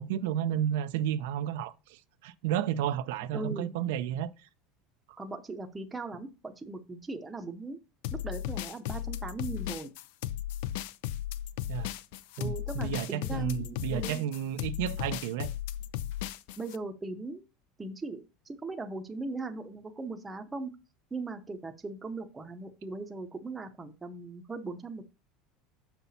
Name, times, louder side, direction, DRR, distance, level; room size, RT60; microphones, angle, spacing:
voice 1, 0.0-4.3 11.7-11.9 12.4-15.5, right 10 dB, 80° right, 0.5 m, -32 dB
voice 2, 3.3-3.7 5.2-7.8 8.1-9.9 12.4-14.2 16.6-17.4 17.8-20.7 21.1-25.0, right 3 dB, 10° right, 0.7 m, -39 dB
sound 1, 8.0-16.8, left 12 dB, 70° left, 0.4 m, -35 dB
6.9 x 5.7 x 4.1 m
cardioid pair, 170°, 0 cm